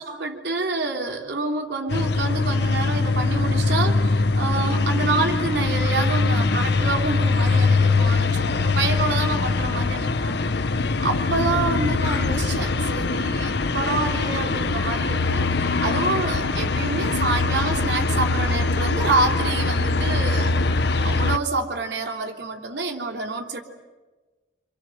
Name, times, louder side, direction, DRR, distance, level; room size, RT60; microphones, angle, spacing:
voice 1, 0.0-10.4 11.0-20.5 21.0-23.6, right 3 dB, 65° right, 2 dB, 3.4 m, -27 dB
sound 1, 1.9-21.4, left 3 dB, 60° left, 0.9 m, -22 dB
27.0 x 27.0 x 8.0 m, 1.2 s
head